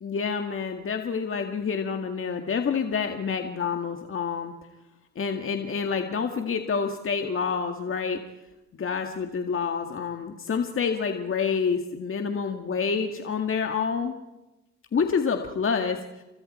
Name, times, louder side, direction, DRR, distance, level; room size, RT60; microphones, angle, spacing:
voice 1, 0.0-4.5 5.2-8.2 8.7-14.2 14.9-16.2, left 6 dB, 45° left, 5 dB, 2.0 m, -28 dB
30.0 x 24.5 x 4.4 m, 1.0 s
cardioid pair, 90°, 30 cm